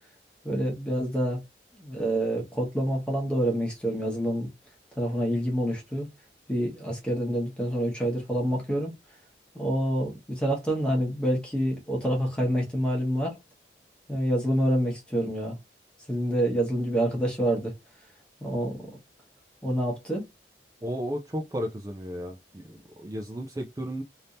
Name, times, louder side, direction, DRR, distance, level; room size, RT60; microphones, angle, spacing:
voice 1, 0.4-1.4 1.8-4.5 5.0-6.1 6.5-8.9 9.5-13.4 14.1-15.6 16.1-17.8 18.4-19.0 19.6-20.2, equal, 5° left, 1.2 m, -27 dB
voice 2, 20.8-24.0, equal, 20° right, 0.4 m, -34 dB
3.4 x 2.7 x 2.5 m
head